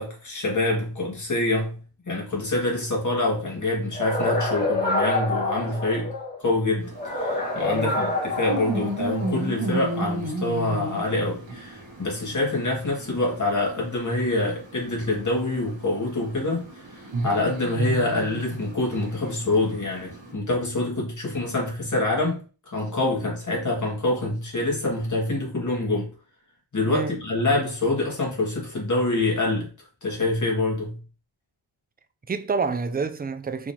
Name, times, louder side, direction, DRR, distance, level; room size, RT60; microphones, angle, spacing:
voice 1, 0.0-1.8 2.1-6.1 6.4-26.1 26.7-29.7 30.0-31.0, left 2 dB, 40° left, 2.0 m, -26 dB
sound 1, 3.9-6.4 7.0-9.4, left 2 dB, 20° left, 1.6 m, -27 dB
sound 2, 6.8-20.3, right 1 dB, 75° right, 1.6 m, -34 dB
voice 2, 32.3-33.7, right 5 dB, 20° right, 0.3 m, -28 dB
4.6 x 3.6 x 2.8 m
wide cardioid pair, 100°, 47 cm